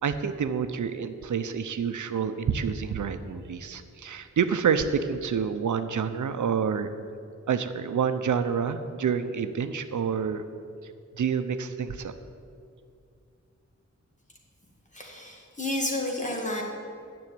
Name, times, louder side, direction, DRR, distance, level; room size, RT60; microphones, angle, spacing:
voice 1, 0.0-6.9 7.5-10.4 11.2-12.1, right 7 dB, 80° right, 9 dB, 0.7 m, -28 dB
voice 2, 14.9-16.6, left 1 dB, 25° left, -1 dB, 2.1 m, -31 dB
10.5 x 7.1 x 9.4 m, 2.3 s
wide cardioid pair, 140°, 30 cm